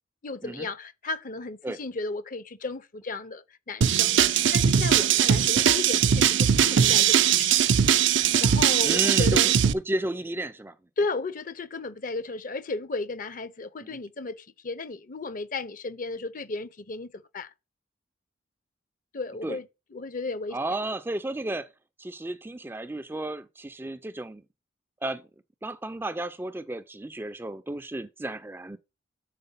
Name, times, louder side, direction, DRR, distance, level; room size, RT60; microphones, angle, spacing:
voice 1, 0.2-7.6 8.1-9.6 11.0-17.5 19.1-20.6, left 3 dB, 45° left, 0.6 m, -34 dB
sound 1, 3.8-9.7, right 8 dB, 70° right, 0.5 m, -20 dB
voice 2, 8.8-10.7 19.4-19.6 20.5-21.7 22.0-24.4 25.0-25.2 25.6-28.8, right 1 dB, 10° right, 0.4 m, -33 dB
6.6 x 4.5 x 5.4 m
head